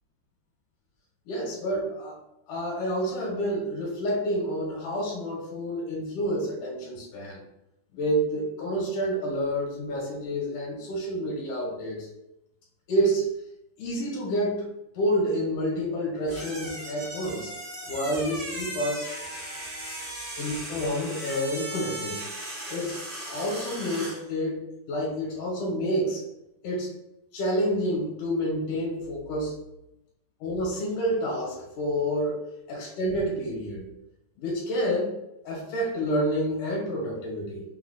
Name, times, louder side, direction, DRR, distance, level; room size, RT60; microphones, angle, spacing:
voice 1, 1.3-2.2 2.5-7.4 7.9-12.1 12.9-13.2 13.8-14.7 14.9-17.5 17.9-19.1 20.4-22.2 22.7-23.0 23.3-26.2 26.6-27.0 27.3-29.6 30.4-33.9 34.4-35.1 35.4-37.6, equal, 85° left, -3 dB, 2.6 m, -29 dB
sound 1, 16.2-24.2, right 1 dB, 40° right, 0.5 m, -37 dB
5.5 x 2.1 x 3.9 m, 0.87 s
omnidirectional pair, 3.5 m